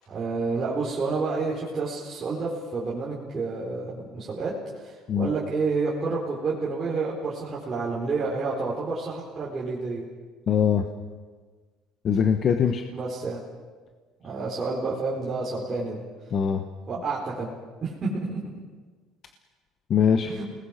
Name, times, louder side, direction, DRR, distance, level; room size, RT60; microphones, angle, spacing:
voice 1, 0.1-4.5 4.8-10.0 12.9-13.4 14.2-16.0 16.9-17.5 17.8-18.4 20.3-20.4, right 4 dB, 25° right, -6 dB, 4.3 m, -29 dB
voice 2, 10.5-10.8 12.0-12.8 16.3-16.6 19.9-20.3, left 7 dB, 40° left, 6 dB, 1.3 m, -22 dB
29.0 x 20.0 x 6.0 m, 1.4 s
cardioid pair, 145°, 0 cm